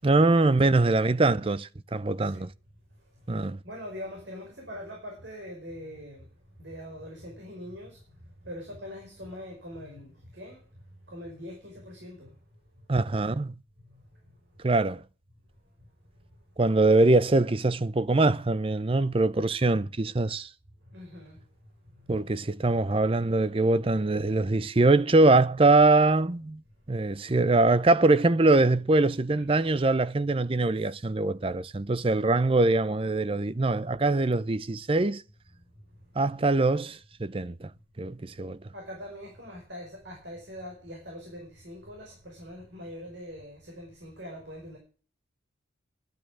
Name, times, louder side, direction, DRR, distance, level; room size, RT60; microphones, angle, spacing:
voice 1, 0.0-2.5 3.3-3.6 12.9-13.5 14.6-15.0 16.6-20.5 22.1-26.6 26.9-35.2 36.2-37.7 38.0-38.6, right 2 dB, 30° right, 0.5 m, -23 dB
voice 2, 3.6-6.3 6.6-10.6 11.1-12.3 13.8-14.0 20.9-21.4 21.9-22.1 29.5-29.7 38.7-44.8, equal, 70° right, 5.2 m, -43 dB
12.0 x 10.5 x 6.2 m
head